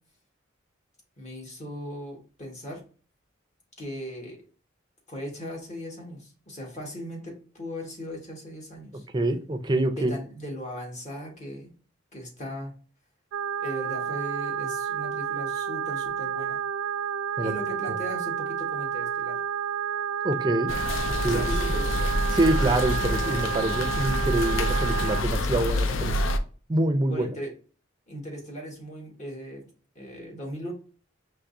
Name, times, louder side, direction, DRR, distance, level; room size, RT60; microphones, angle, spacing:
voice 1, 1.2-2.8 3.8-4.4 5.1-9.0 10.0-11.7 12.1-12.7 13.6-16.6 17.4-19.4 21.3-22.1 27.1-27.5 28.1-29.7 29.9-30.7, equal, 40° left, 1.4 m, -38 dB
voice 2, 9.1-10.1 17.4-17.5 20.2-20.7 21.2-21.4 22.3-26.1 26.7-27.3, right 1 dB, 25° right, 0.5 m, -25 dB
sound 1, 13.3-25.2, right 8 dB, 90° right, 0.3 m, -30 dB
sound 2, 20.7-26.4, left 1 dB, 85° left, 0.5 m, -27 dB
4.7 x 3.2 x 2.6 m
head